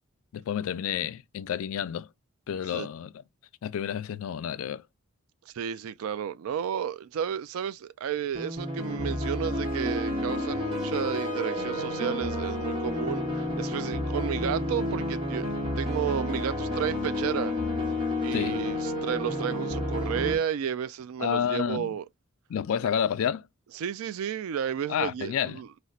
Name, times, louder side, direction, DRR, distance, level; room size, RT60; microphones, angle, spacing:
voice 1, 0.3-2.1 2.5-3.1 3.6-4.8 18.3-18.6 21.2-22.0 22.5-23.5 24.9-25.6, left 8 dB, 75° left, 0.3 m, -30 dB
voice 2, 2.5-2.9 5.5-15.5 15.8-17.5 18.2-22.0 23.7-25.7, right 8 dB, 80° right, 0.3 m, -32 dB
sound 1, 8.3-20.4, left 1 dB, 25° right, 0.9 m, -30 dB
4.1 x 2.1 x 2.3 m
head